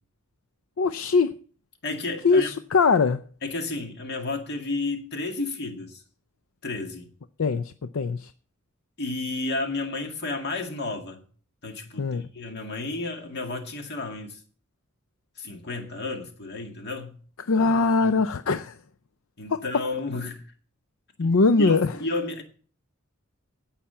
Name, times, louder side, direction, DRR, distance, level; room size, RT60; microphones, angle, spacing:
voice 1, 0.8-1.4 2.2-3.2 7.4-8.3 12.0-12.2 17.5-18.8 19.5-19.6 21.2-21.9, left 4 dB, 75° left, 0.5 m, -21 dB
voice 2, 1.8-2.5 3.4-6.0 6.6-7.1 9.0-11.2 11.6-14.4 15.4-17.2 18.0-18.1 19.4-20.4 21.2-21.3 21.6-22.4, left 2 dB, 55° left, 2.1 m, -32 dB
16.0 x 5.7 x 5.7 m
head